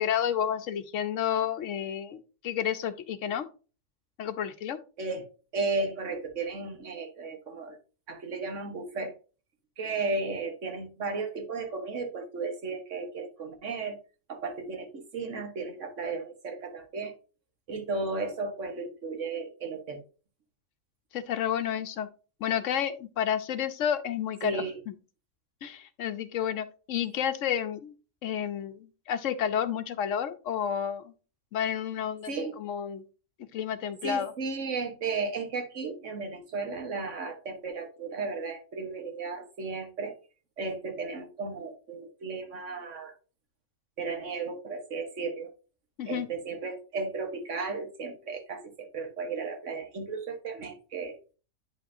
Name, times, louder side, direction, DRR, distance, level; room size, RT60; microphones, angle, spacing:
voice 1, 0.0-3.5 4.2-4.8 21.1-22.1 22.4-24.9 25.6-27.9 28.2-31.1 31.5-32.3 32.6-33.0 33.5-34.3 46.0-46.3, left 9 dB, 70° left, 11 dB, 1.0 m, -30 dB
voice 2, 5.5-7.8 8.1-9.1 9.8-14.0 14.3-17.1 17.7-20.0 24.4-24.8 32.3-32.5 34.0-40.1 40.6-43.1 44.0-45.5 46.1-51.3, right 4 dB, 65° right, 5 dB, 1.6 m, -34 dB
9.0 x 5.5 x 2.6 m, 0.35 s
omnidirectional pair, 1.4 m